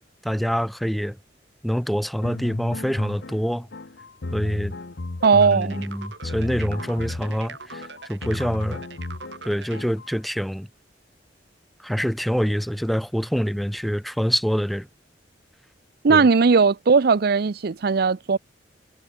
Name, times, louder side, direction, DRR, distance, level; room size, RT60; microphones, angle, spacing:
voice 1, 0.2-1.2 1.6-3.7 4.3-4.7 5.3-8.8 9.5-10.7 11.8-14.9 16.1-16.3, equal, ahead, 1.9 m, -25 dB
sound 1, 2.2-10.1, left 2 dB, 65° left, 0.9 m, -35 dB
voice 2, 5.2-5.8 16.0-18.4, right 5 dB, 60° right, 0.5 m, -18 dB
sound 2, 5.2-9.8, right 5 dB, 75° right, 4.4 m, -42 dB
head